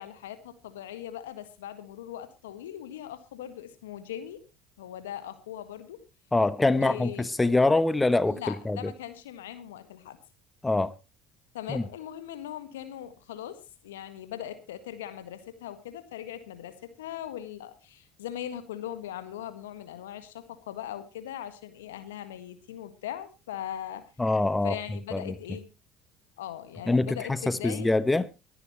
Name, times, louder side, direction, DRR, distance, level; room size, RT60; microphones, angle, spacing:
voice 1, 0.0-4.4 4.8-6.0 6.7-7.3 8.3-10.2 11.5-24.1 24.6-25.7 26.4-27.9, left 11 dB, 80° left, 1.6 m, -40 dB
voice 2, 6.3-8.8 10.6-10.9 11.7-11.8 24.2-24.8 25.1-25.3 26.9-27.2 27.5-28.2, left 2 dB, 15° left, 0.9 m, -24 dB
23.0 x 9.8 x 3.0 m
hypercardioid pair, 65°, 0 cm